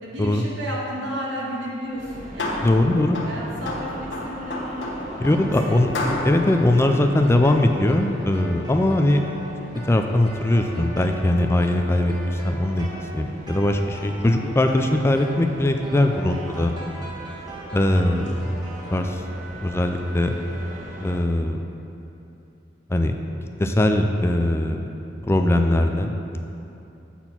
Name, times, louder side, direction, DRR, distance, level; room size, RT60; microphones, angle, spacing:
voice 1, 0.0-2.7 3.1-5.8 18.0-18.2, equal, 85° right, -5 dB, 1.9 m, -33 dB
sound 1, 1.9-7.8, left 1 dB, 90° left, 1.2 m, -32 dB
sound 2, 2.0-21.2, equal, 40° right, 0.8 m, -41 dB
voice 2, 2.6-3.2 5.2-5.9 6.2-9.5 9.9-12.9 13.1-16.7 17.7-19.2 19.6-20.3 21.0-21.6 22.9-23.2 23.6-24.8 25.2-26.4, left 1 dB, 15° left, 5 dB, 0.3 m, -21 dB
sound 3, 5.2-19.1, right 2 dB, 20° right, 1.4 m, -40 dB
8.8 x 4.2 x 5.7 m, 2.8 s
head